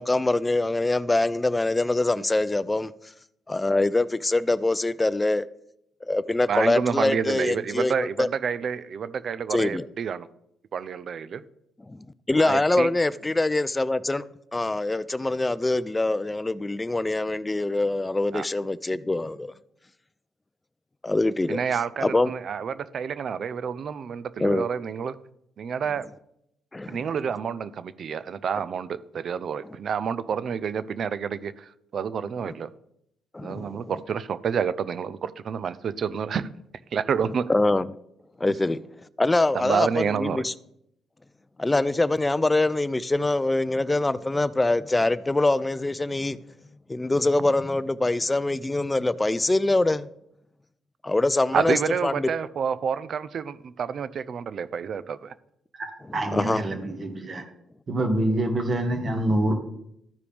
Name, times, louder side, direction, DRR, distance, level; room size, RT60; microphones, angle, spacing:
voice 1, 0.0-2.9 3.5-5.5 6.0-8.3 9.5-9.9 11.9-12.0 12.3-14.2 14.5-19.5 21.0-21.6 22.0-22.3 24.4-24.7 26.7-27.1 32.5-32.6 33.3-33.9 37.5-37.9 38.4-38.8 39.2-40.5 41.6-46.4 46.9-50.1 51.0-52.3 56.1-56.6 59.3-59.4, left 2 dB, 15° left, 0.4 m, -24 dB
voice 2, 6.5-10.3 10.7-11.4 12.4-12.9 18.3-18.5 21.5-25.2 25.6-26.1 26.9-32.7 33.4-36.5 36.9-37.5 39.5-40.4 51.5-55.3, right 7 dB, 55° right, 0.5 m, -29 dB
voice 3, 55.8-57.4 57.9-59.5, right 1 dB, 40° right, 1.8 m, -26 dB
14.0 x 4.8 x 3.5 m
cardioid pair, 90°, 0 cm